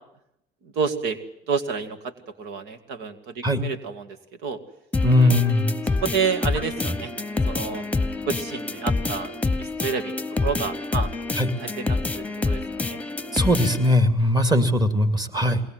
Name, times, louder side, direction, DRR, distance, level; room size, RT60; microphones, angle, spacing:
voice 1, 0.6-1.2 1.5-2.1 2.4-4.2 4.4-4.6 5.2-5.3 6.0-7.1 7.5-7.9 8.2-9.3 9.6-10.1 10.4-11.1 11.6-13.0 14.2-14.3, right 5 dB, 90° right, 10 dB, 2.2 m, -29 dB
sound 1, 4.9-13.9, left 3 dB, 10° left, 1.1 m, -27 dB
voice 2, 5.0-5.7 11.4-11.5 13.3-15.6, left 1 dB, 25° right, 10 dB, 2.7 m, -20 dB
22.0 x 19.0 x 9.3 m, 0.77 s
cardioid pair, 110°, 17 cm